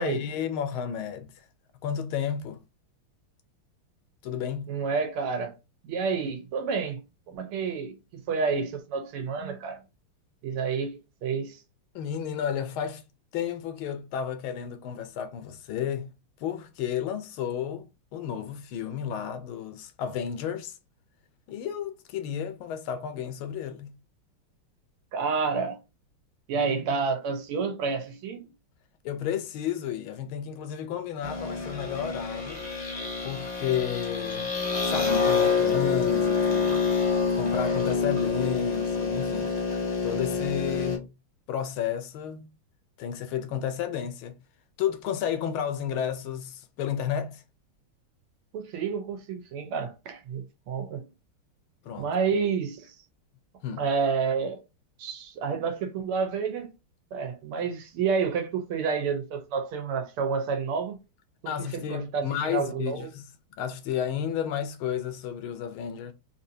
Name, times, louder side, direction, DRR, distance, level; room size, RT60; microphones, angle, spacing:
voice 1, 0.0-1.5 1.8-2.6 4.2-4.7 11.9-13.0 13.3-16.1 16.4-17.9 18.1-20.7 21.5-23.9 29.0-32.6 33.2-34.5 34.8-36.9 37.3-39.6 40.0-41.1 41.5-42.5 43.0-44.4 44.8-47.4 51.8-52.1 53.6-53.8 61.5-63.2 63.6-66.1, left 9 dB, 75° left, 1.4 m, -32 dB
voice 2, 4.7-5.5 5.8-7.0 7.3-8.0 8.3-9.8 10.4-11.6 25.1-25.8 26.5-28.4 48.5-51.1 52.0-53.0 53.8-54.6 55.0-56.7 57.1-61.0 61.4-61.5 61.9-63.1, right 5 dB, 85° right, 1.7 m, -29 dB
sound 1, 31.2-41.0, left 5 dB, 25° left, 0.8 m, -27 dB
4.3 x 2.6 x 2.6 m
omnidirectional pair, 2.4 m